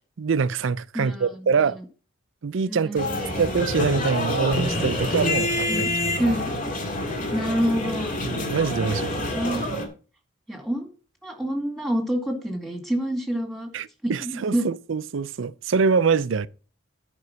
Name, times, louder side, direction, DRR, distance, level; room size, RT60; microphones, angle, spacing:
voice 1, 0.2-1.8 2.4-3.1 3.4-6.3 8.2-9.2 13.7-16.5, right 5 dB, 75° right, 0.5 m, -24 dB
voice 2, 0.9-1.7 2.7-3.5 5.5-5.9 6.2-6.5 7.3-8.2 8.8-9.6 10.5-10.9 11.2-13.7 14.0-14.7, equal, ahead, 2.1 m, -28 dB
sound 1, 3.0-9.8, left 1 dB, 40° left, 2.2 m, -27 dB
9.6 x 5.3 x 6.0 m
head